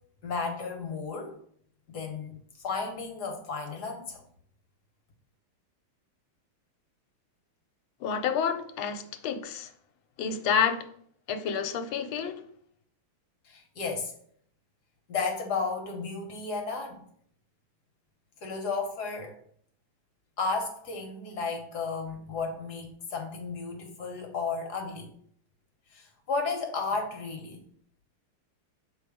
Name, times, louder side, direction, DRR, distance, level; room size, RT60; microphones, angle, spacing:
voice 1, 0.2-1.4 1.9-4.2 13.4-14.1 15.1-17.0 18.4-19.4 20.4-25.1 25.9-27.6, left 4 dB, 55° left, 1.3 m, -33 dB
voice 2, 8.0-9.7 10.2-10.8 11.3-12.4, left 7 dB, 75° left, 1.4 m, -29 dB
6.7 x 3.7 x 4.8 m
omnidirectional pair, 2.4 m